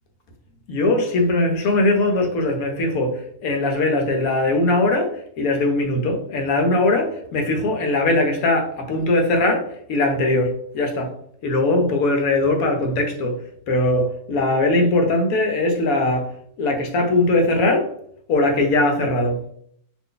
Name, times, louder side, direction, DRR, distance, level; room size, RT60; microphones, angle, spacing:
voice 1, 0.7-11.1 11.4-13.4 13.7-16.2 16.6-17.9 18.3-19.4, left 2 dB, 75° left, 3 dB, 1.1 m, -20 dB
2.6 x 2.6 x 3.6 m, 0.66 s
omnidirectional pair, 1.5 m